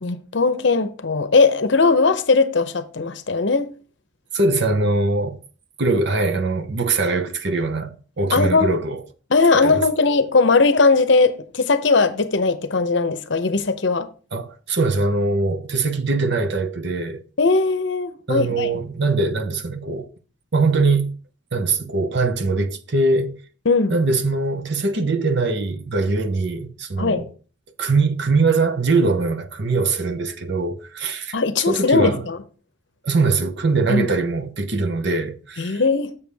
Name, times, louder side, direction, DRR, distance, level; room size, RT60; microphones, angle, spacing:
voice 1, 0.0-3.7 8.3-8.7 9.3-14.1 17.4-18.7 23.7-23.9 27.0-27.2 31.3-32.4 33.9-34.1 35.6-36.1, left 4 dB, 60° left, 0.7 m, -19 dB
voice 2, 4.3-5.4 5.8-9.0 9.5-9.8 14.3-17.2 18.3-20.1 20.5-21.1 21.5-23.4 23.9-27.3 27.8-31.4 31.7-32.3 33.0-35.8, right 3 dB, 55° right, 0.8 m, -22 dB
7.0 x 6.9 x 3.4 m
head